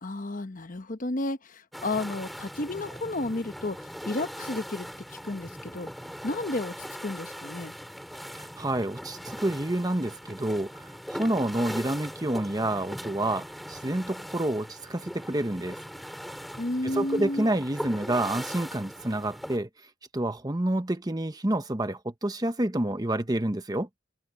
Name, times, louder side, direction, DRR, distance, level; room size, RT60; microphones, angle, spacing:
voice 1, 0.0-5.9 6.2-6.7 7.0-7.7 16.6-17.5, left 2 dB, 40° left, 0.9 m, -32 dB
sound 1, 1.7-19.6, equal, ahead, 6.4 m, -40 dB
voice 2, 8.3-15.8 17.0-19.7 20.1-23.9, right 1 dB, 20° right, 0.9 m, -28 dB
head